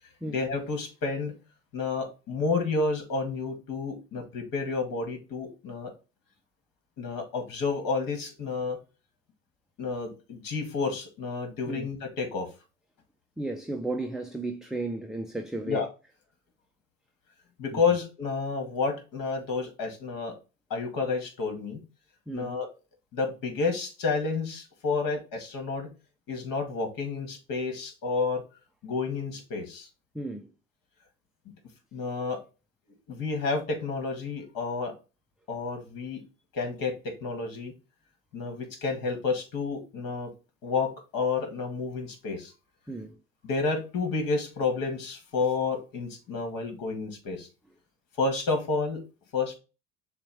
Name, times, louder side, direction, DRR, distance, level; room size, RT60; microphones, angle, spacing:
voice 1, 0.3-1.3 1.7-5.9 7.0-8.8 9.8-12.5 15.7-15.9 17.6-20.3 20.7-21.8 22.3-22.7 23.1-25.9 26.3-28.4 28.8-29.9 31.9-32.4 33.1-34.9 35.5-36.2 36.5-37.7 38.3-40.3 40.6-42.5 43.4-47.5 48.2-49.0 49.3-49.6, left 4 dB, 55° left, 1.8 m, -30 dB
voice 2, 13.4-15.9 17.7-17.8 22.3-22.6 30.1-30.5 42.9-43.2, right 2 dB, ahead, 0.4 m, -34 dB
6.7 x 2.3 x 3.4 m
hypercardioid pair, 75°, 39 cm